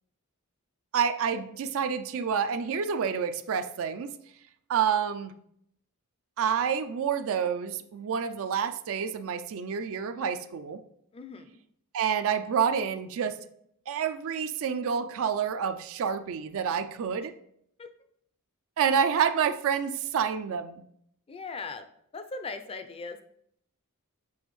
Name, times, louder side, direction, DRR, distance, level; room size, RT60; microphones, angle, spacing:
voice 1, 0.9-4.1 4.7-5.3 6.4-10.8 11.9-13.4 13.9-17.3 18.8-20.8, right 7 dB, 65° right, 10 dB, 0.4 m, -28 dB
voice 2, 11.1-11.6 17.8-17.9 21.3-21.8 22.1-23.2, left 4 dB, 25° left, 8 dB, 0.4 m, -39 dB
7.0 x 4.3 x 3.1 m, 0.72 s
head